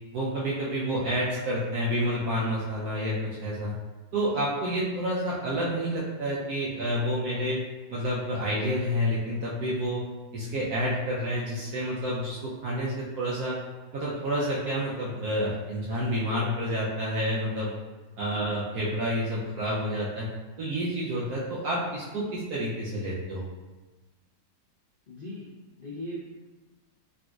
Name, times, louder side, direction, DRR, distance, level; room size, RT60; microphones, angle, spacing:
voice 1, 0.1-3.7 4.1-7.6 7.9-10.0 10.3-13.6 13.9-17.7 18.2-20.3 20.6-23.5, equal, 70° right, -6 dB, 1.0 m, -29 dB
voice 2, 18.1-18.7 25.1-26.3, equal, 85° left, -9 dB, 0.4 m, -40 dB
3.9 x 2.5 x 2.3 m, 1.2 s
omnidirectional pair, 1.9 m